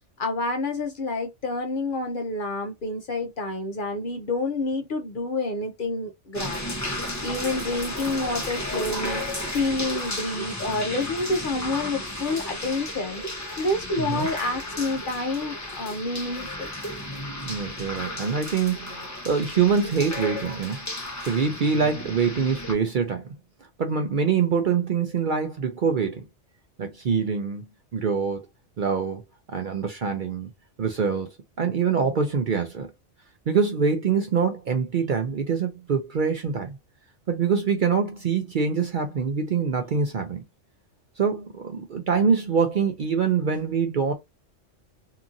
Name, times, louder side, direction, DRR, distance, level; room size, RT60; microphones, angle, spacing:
voice 1, 0.2-6.7 6.9-9.2 9.5-16.7, left 2 dB, 55° left, 0.6 m, -28 dB
sound 1, 6.3-22.7, left 1 dB, 15° left, 0.7 m, -33 dB
voice 2, 14.0-14.3 17.4-20.8 21.2-23.3 23.8-26.2 26.8-27.7 27.9-28.5 28.8-29.2 29.5-30.5 30.8-31.3 31.6-32.9 33.5-36.8 37.3-40.4 41.2-44.1, right 6 dB, 55° right, 0.5 m, -24 dB
2.8 x 2.5 x 2.4 m
omnidirectional pair, 1.3 m